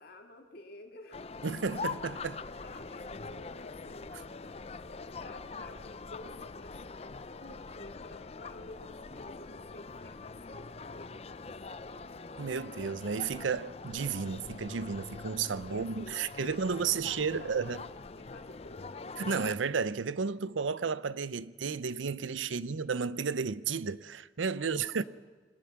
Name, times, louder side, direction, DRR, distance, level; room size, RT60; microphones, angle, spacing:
voice 1, 0.0-1.3 2.3-4.3 4.6-6.7 7.4-12.7 15.7-17.8 18.1-19.1 22.4-22.8 24.5-25.0, left 1 dB, 55° left, 2.7 m, -52 dB
sound 1, 1.1-19.5, left 4 dB, 35° left, 0.5 m, -44 dB
voice 2, 1.4-2.4 12.4-17.8 19.2-25.0, right 5 dB, 90° right, 0.6 m, -33 dB
24.0 x 19.0 x 5.9 m
head